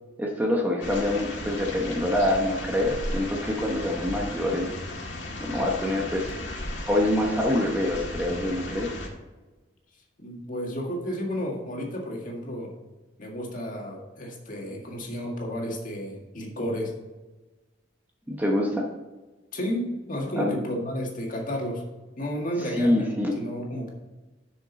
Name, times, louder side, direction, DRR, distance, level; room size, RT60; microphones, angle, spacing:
voice 1, 0.2-4.7 5.4-6.4 6.8-8.9 18.3-18.9 20.4-20.5 22.7-23.4, left 1 dB, 10° right, -1 dB, 1.0 m, -25 dB
sound 1, 0.8-9.1, left 1 dB, 80° left, 1.7 m, -35 dB
voice 2, 10.2-12.7 13.2-16.9 19.5-21.8 22.2-23.9, equal, 45° left, -1 dB, 1.9 m, -32 dB
7.3 x 6.3 x 4.1 m, 1.2 s
head